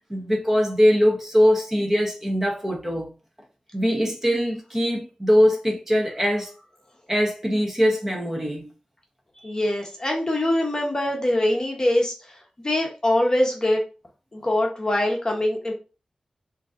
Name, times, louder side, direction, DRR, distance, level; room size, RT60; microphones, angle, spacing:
voice 1, 0.1-3.1 3.7-6.5 7.1-8.7, equal, 15° right, 0.8 m, -21 dB
voice 2, 9.4-13.8 14.3-15.7, left 1 dB, 30° left, 0.8 m, -23 dB
3.7 x 2.6 x 2.4 m
wide cardioid pair, 95°, 2 cm